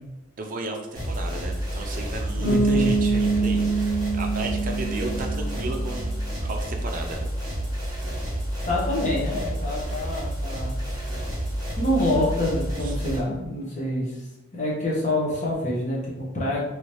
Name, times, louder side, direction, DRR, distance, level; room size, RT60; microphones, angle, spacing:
voice 1, 0.4-6.1 6.4-7.2 12.8-13.0, right 2 dB, 40° right, 2 dB, 0.5 m, -34 dB
sound 1, 0.9-13.2, right 1 dB, 20° right, 1.1 m, -30 dB
voice 2, 2.4-2.9 8.7-10.7 11.8-14.2 14.5-16.6, left 1 dB, 40° left, -4 dB, 0.8 m, -26 dB
Bass guitar, 2.4-6.1, right 3 dB, ahead, 1.4 m, -25 dB
3.1 x 2.8 x 3.1 m, 0.94 s
head